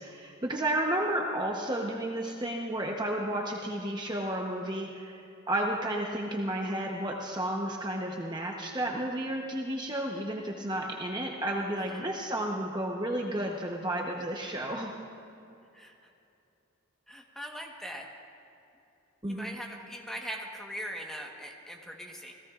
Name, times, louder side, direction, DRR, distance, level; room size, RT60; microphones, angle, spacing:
voice 1, 0.0-14.9 19.2-19.5, right 1 dB, 20° right, -1 dB, 0.9 m, -32 dB
voice 2, 11.7-12.0 15.7-15.9 17.1-18.1 19.3-22.3, equal, ahead, 0 dB, 1.3 m, -41 dB
28.5 x 18.0 x 2.5 m, 2.8 s
head